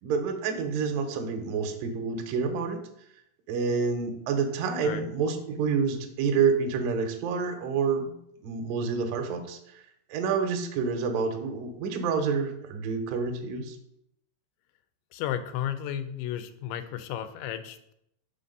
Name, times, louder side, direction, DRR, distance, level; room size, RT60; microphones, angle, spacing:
voice 1, 0.0-2.8 3.5-8.1 8.4-9.6 10.1-13.8, right 5 dB, 75° right, 5 dB, 2.2 m, -28 dB
voice 2, 15.1-17.9, left 10 dB, 90° left, 10 dB, 2.6 m, -33 dB
5.7 x 4.1 x 5.3 m, 0.76 s
omnidirectional pair, 4.5 m